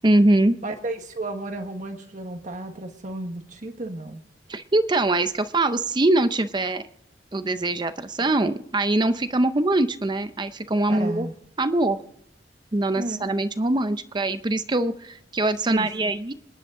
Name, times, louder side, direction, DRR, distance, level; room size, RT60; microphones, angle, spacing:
voice 1, 0.0-0.6 4.5-6.8 7.3-11.3 11.6-12.0 12.7-16.3, right 2 dB, 25° right, 10 dB, 0.6 m, -23 dB
voice 2, 0.6-4.2 8.2-8.3 10.9-11.3 13.0-13.3 15.7-16.1, right 2 dB, 45° right, 4 dB, 1.4 m, -33 dB
27.0 x 10.5 x 3.7 m, 0.74 s
head